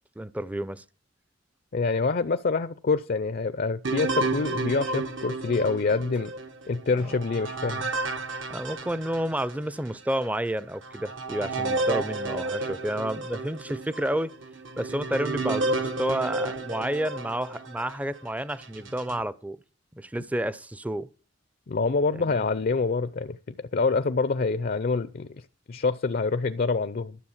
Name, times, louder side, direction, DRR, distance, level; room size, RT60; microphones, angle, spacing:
voice 1, 0.2-0.8 6.9-7.1 8.5-14.3 14.8-19.6 19.9-21.1 22.1-22.4, right 1 dB, 10° right, 0.5 m, -30 dB
voice 2, 1.7-6.3 6.7-7.9 21.7-25.3 25.7-27.2, left 4 dB, 50° left, 0.5 m, -26 dB
sound 1, 3.8-9.6 10.1-10.2 10.8-18.0 18.6-19.2, right 2 dB, 80° right, 1.5 m, -32 dB
12.5 x 6.8 x 7.2 m
head